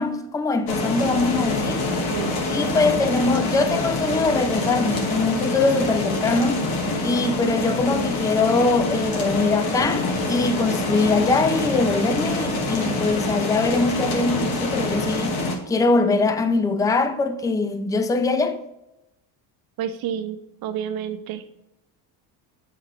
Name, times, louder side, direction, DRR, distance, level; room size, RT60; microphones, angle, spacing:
voice 1, 0.0-1.8 2.5-6.7 7.0-18.6, left 3 dB, 10° left, 0.4 m, -22 dB
sound 1, 0.7-15.6, left 2 dB, 60° left, 1.7 m, -25 dB
voice 2, 19.8-21.4, right 9 dB, 60° right, 0.8 m, -30 dB
7.9 x 4.2 x 3.8 m
cardioid pair, 100°, 41 cm